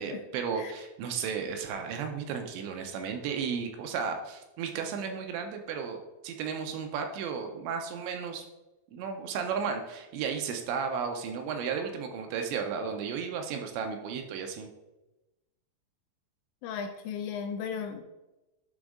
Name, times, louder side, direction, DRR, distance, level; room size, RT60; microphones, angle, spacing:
voice 1, 0.0-6.0 6.2-8.5 8.9-14.7, right 6 dB, 80° right, 4 dB, 2.8 m, -34 dB
voice 2, 16.6-18.0, left 6 dB, 80° left, 5 dB, 2.7 m, -36 dB
11.5 x 4.0 x 3.6 m, 1.0 s
omnidirectional pair, 5.4 m